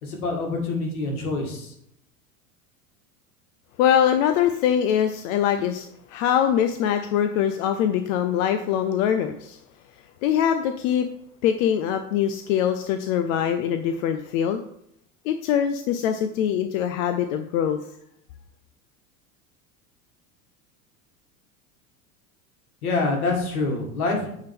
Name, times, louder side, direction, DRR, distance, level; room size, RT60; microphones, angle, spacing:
voice 1, 0.0-1.7 22.8-24.3, left 3 dB, 80° left, 1 dB, 1.8 m, -26 dB
voice 2, 3.8-9.6 10.2-11.1 11.4-14.6 15.3-17.8, left 9 dB, 65° left, 7 dB, 0.6 m, -23 dB
8.6 x 3.6 x 3.6 m, 0.73 s
hypercardioid pair, 85°, 43 cm